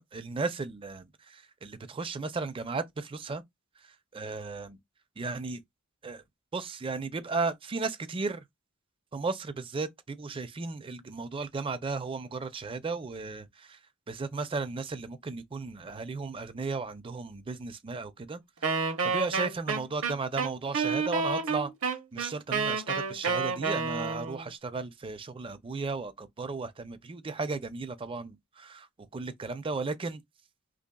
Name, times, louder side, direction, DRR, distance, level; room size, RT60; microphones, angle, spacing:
voice 1, 0.0-3.4 4.1-4.8 5.2-5.6 6.0-6.2 6.5-8.4 9.1-13.8 14.1-18.4 19.0-28.9 29.1-30.2, right 4 dB, 25° right, 0.4 m, -35 dB
Wind instrument woodwind instrument, 18.6-24.5, right 5 dB, 65° right, 0.7 m, -30 dB
3.9 x 3.0 x 2.2 m
head